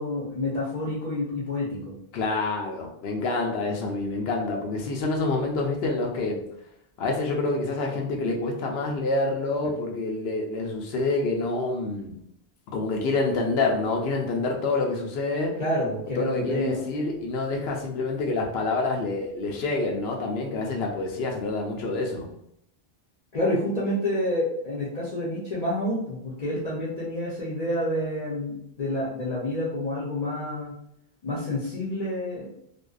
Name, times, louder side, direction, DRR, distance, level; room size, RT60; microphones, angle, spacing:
voice 1, 0.0-2.0 15.6-16.8 23.3-30.8 31.2-32.5, left 1 dB, 45° left, -7 dB, 0.7 m, -28 dB
voice 2, 2.1-6.4 7.0-12.2 12.7-15.6 16.2-22.3, left 3 dB, 80° left, 1 dB, 0.8 m, -27 dB
2.5 x 2.1 x 2.3 m, 0.75 s
omnidirectional pair, 1.0 m